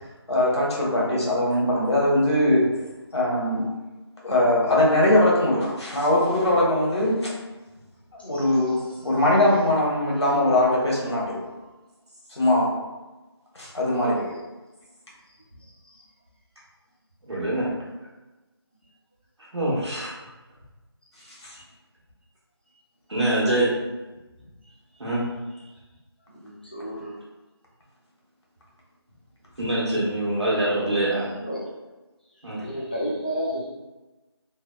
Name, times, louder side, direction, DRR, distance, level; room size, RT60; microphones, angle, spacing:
voice 1, 0.3-2.6 3.1-3.7 4.2-7.3 8.2-8.8 9.0-11.4 12.3-12.7 13.5-14.3 21.4-21.6, left 1 dB, 75° left, -5 dB, 1.1 m, -21 dB
voice 2, 17.3-17.7 19.5-20.1 23.1-23.7 25.0-25.2 29.6-31.3 32.4-32.6, right 1 dB, 85° right, -7 dB, 1.0 m, -24 dB
voice 3, 26.3-27.1 31.2-31.6 32.6-33.7, equal, 20° left, -6 dB, 0.4 m, -31 dB
3.2 x 2.1 x 2.2 m, 1.1 s
figure-of-eight pair, 170°, 14 cm